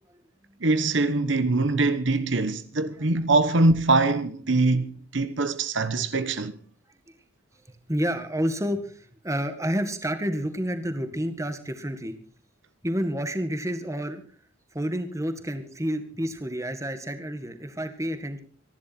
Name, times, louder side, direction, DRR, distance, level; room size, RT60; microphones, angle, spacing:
voice 1, 0.6-6.6, right 3 dB, 65° right, 1.1 m, -23 dB
voice 2, 7.7-12.2 12.8-14.2 14.7-18.4, equal, 15° right, 1.9 m, -29 dB
26.0 x 11.5 x 4.4 m
head